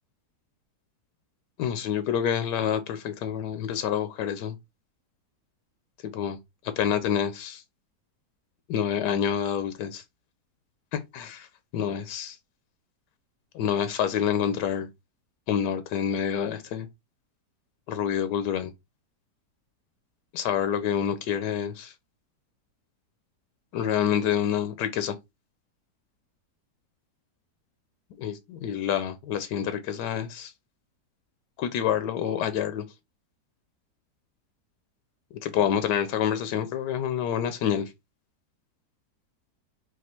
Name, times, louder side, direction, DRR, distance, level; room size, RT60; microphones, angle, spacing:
voice 1, 1.6-4.6 6.0-6.4 6.6-7.6 8.7-10.0 10.9-11.5 11.7-12.4 13.5-14.9 15.5-16.9 17.9-18.7 20.3-21.9 23.7-25.2 28.2-30.5 31.6-32.8 35.4-37.9, left 9 dB, 90° left, 1.2 m, -27 dB
4.2 x 2.5 x 4.2 m
omnidirectional pair, 1.8 m